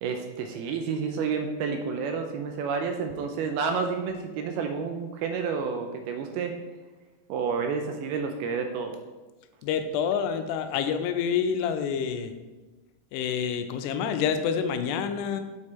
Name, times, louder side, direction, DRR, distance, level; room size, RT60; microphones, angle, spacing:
voice 1, 0.0-6.6 7.3-9.0, right 5 dB, 80° right, 5 dB, 2.3 m, -30 dB
voice 2, 9.6-12.3 13.1-15.4, left 7 dB, 90° left, 8 dB, 2.7 m, -27 dB
6.7 x 4.9 x 4.2 m, 1.2 s
omnidirectional pair, 4.7 m